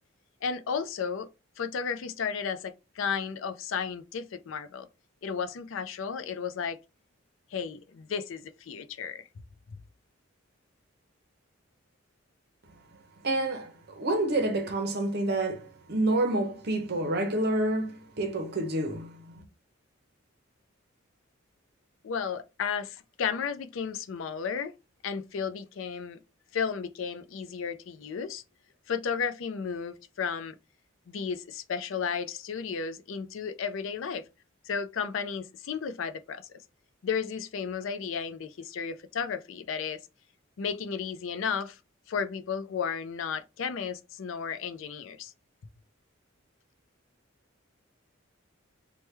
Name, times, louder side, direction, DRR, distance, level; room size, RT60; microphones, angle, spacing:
voice 1, 0.4-1.3 1.6-4.9 5.2-6.8 7.5-9.3 22.0-24.7 25.0-26.2 26.5-28.4 28.9-30.5 31.1-34.2 34.6-36.4 37.0-40.0 40.6-41.8 42.1-45.3, left 6 dB, 70° left, 0.4 m, -33 dB
voice 2, 13.2-13.7 14.0-19.4, right 2 dB, 50° right, 0.7 m, -28 dB
3.0 x 2.2 x 3.2 m
head